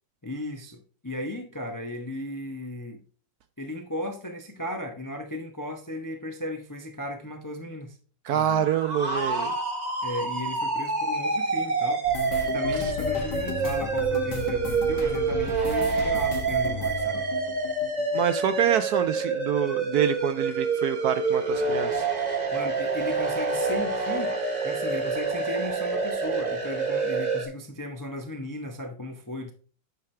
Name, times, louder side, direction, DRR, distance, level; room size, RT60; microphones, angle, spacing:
voice 1, 0.2-3.0 3.6-8.0 8.3-8.6 10.0-17.2 22.5-24.4 24.6-29.5, left 1 dB, 30° left, 0.3 m, -36 dB
voice 2, 8.3-9.5 12.8-12.9 18.1-22.1, right 9 dB, 70° right, 0.9 m, -26 dB
sound 1, 8.5-27.5, right 4 dB, 25° right, 1.2 m, -27 dB
sound 2, 12.0-18.9 19.1-20.2 20.5-20.8 21.1-21.3, left 4 dB, 65° left, 1.6 m, -35 dB
9.4 x 6.1 x 3.3 m
omnidirectional pair, 2.0 m